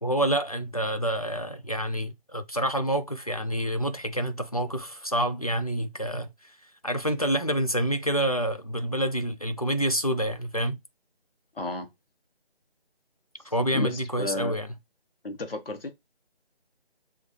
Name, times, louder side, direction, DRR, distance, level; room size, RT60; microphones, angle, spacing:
voice 1, 0.0-6.3 6.8-10.8 13.4-14.7, right 1 dB, 40° left, 0.4 m, -27 dB
voice 2, 11.5-11.9 13.7-14.6 15.2-15.9, left 3 dB, 60° left, 1.2 m, -32 dB
6.3 x 2.4 x 3.1 m
figure-of-eight pair, 170°, 32 cm